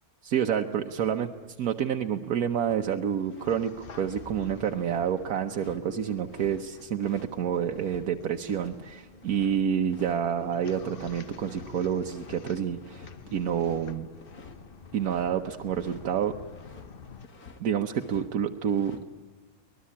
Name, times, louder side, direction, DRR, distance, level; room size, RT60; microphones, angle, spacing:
voice 1, 0.2-1.3 1.6-14.1 14.9-16.3 17.6-19.0, right 8 dB, 80° right, 5 dB, 1.4 m, -28 dB
sound 1, 1.1-17.2, left 5 dB, 45° left, 1.0 m, -48 dB
sound 2, 2.7-3.6 3.9-8.1 8.4-8.7 9.0-10.9 11.3-11.7 11.9-12.4 12.7-16.1 16.4-16.8 17.2-18.3 18.5-19.0, left 4 dB, 85° left, 2.5 m, -50 dB
24.5 x 20.0 x 8.6 m, 1.4 s
omnidirectional pair, 1.6 m